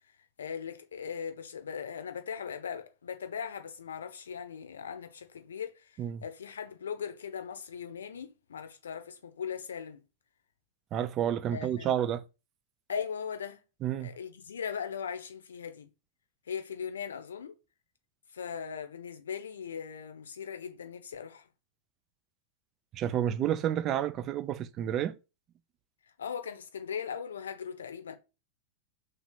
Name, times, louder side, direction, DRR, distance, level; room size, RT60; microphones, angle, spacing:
voice 1, 0.4-10.0 11.5-11.9 12.9-13.6 14.0-15.9 16.5-17.6 18.3-21.5 26.2-28.2, left 7 dB, 65° left, 0.6 m, -39 dB
voice 2, 10.9-12.2 13.8-14.2 22.9-25.2, right 10 dB, 35° right, 0.4 m, -30 dB
3.2 x 2.9 x 4.4 m
figure-of-eight pair, 90°, 0 cm